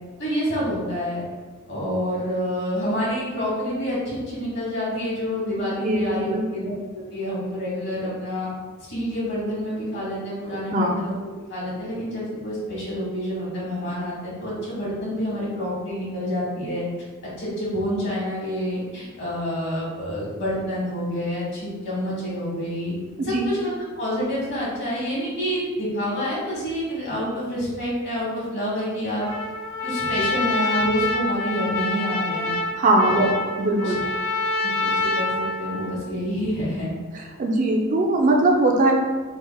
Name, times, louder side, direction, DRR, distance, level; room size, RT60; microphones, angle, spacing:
voice 1, 0.2-1.2 1.7-8.5 8.8-11.1 11.5-16.8 17.4-22.9 23.2-29.2 29.8-32.5 33.1-33.2 33.8-34.0 34.6-36.9, equal, 55° left, -7 dB, 1.5 m, -28 dB
voice 2, 5.8-6.5 10.7-10.9 23.2-23.5 32.8-33.2 33.6-34.0 37.4-38.9, right 2 dB, 35° right, 1 dB, 0.4 m, -20 dB
Trumpet, 29.2-36.0, left 3 dB, 70° left, 0.5 m, -26 dB
3.2 x 2.4 x 3.5 m, 1.3 s
head